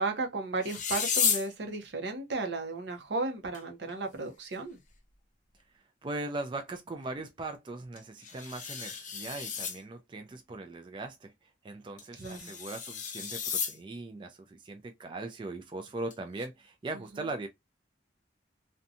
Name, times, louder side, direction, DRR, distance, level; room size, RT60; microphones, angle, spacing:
voice 1, 0.0-4.8 12.2-12.5, right 3 dB, 75° right, 0.7 m, -34 dB
sound 1, 0.6-1.5 3.5-3.6 3.9-4.0 4.5-4.6 8.0-9.8 12.0-13.8 16.1-16.5, left 7 dB, 45° left, 0.6 m, -33 dB
voice 2, 5.7-17.5, right 2 dB, 30° right, 0.3 m, -40 dB
2.6 x 2.2 x 2.5 m
head